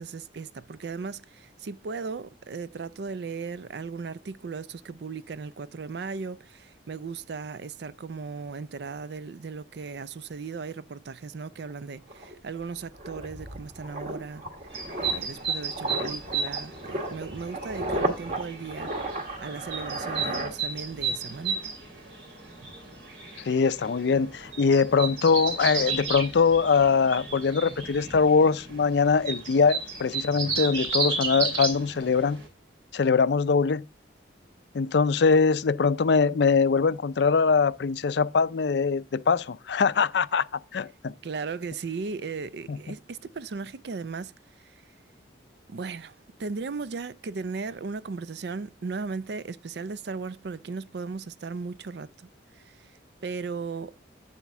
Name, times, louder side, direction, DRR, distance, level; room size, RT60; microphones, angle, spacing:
voice 1, 0.0-14.4 15.0-18.9 19.4-21.7 41.2-44.3 44.6-44.7 45.7-46.1 46.4-52.3 52.6-52.9 53.2-53.9, right 4 dB, 60° right, 0.4 m, -36 dB
sound 1, 11.7-11.8 12.1-21.2 21.4-21.7, right 1 dB, 45° right, 1.7 m, -34 dB
sound 2, 14.7-32.5, right 4 dB, 80° right, 3.0 m, -34 dB
voice 2, 23.5-32.4 32.9-33.8 34.7-40.5 40.7-41.1 42.7-42.8, left 5 dB, 65° left, 0.4 m, -22 dB
8.3 x 7.2 x 3.5 m
head